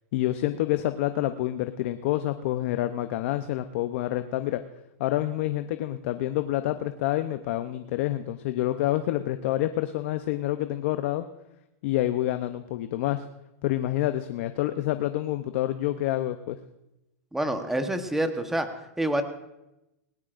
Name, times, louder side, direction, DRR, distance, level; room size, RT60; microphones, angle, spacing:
voice 1, 0.1-4.6 5.0-11.2 11.8-13.2 13.6-16.6, left 14 dB, 55° left, 9 dB, 0.7 m, -28 dB
voice 2, 17.3-18.7 19.0-19.2, right 1 dB, 5° right, 7 dB, 1.1 m, -27 dB
19.0 x 18.0 x 2.6 m, 0.92 s
hypercardioid pair, 140°, 8 cm